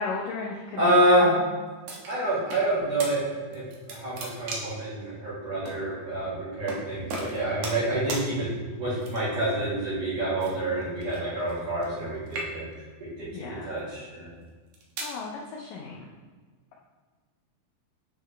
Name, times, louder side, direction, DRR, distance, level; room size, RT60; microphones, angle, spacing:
voice 1, 0.0-1.4 13.3-13.8 15.0-16.1, left 4 dB, 80° left, -2 dB, 1.9 m, -35 dB
voice 2, 0.8-1.3 2.1-3.2 3.5-8.5 8.8-12.7 13.0-14.3, right 1 dB, 45° right, -9 dB, 2.7 m, -27 dB
sound 1, 1.9-2.6 3.0-3.1 3.5-4.8 5.7-5.8 6.7-6.8 7.1-8.2 9.0-9.4 10.4-12.0 12.3-12.8 13.5-13.8 14.5-15.2, right 2 dB, 70° right, 1.8 m, -36 dB
8.4 x 3.7 x 3.3 m, 1.5 s
omnidirectional pair, 4.5 m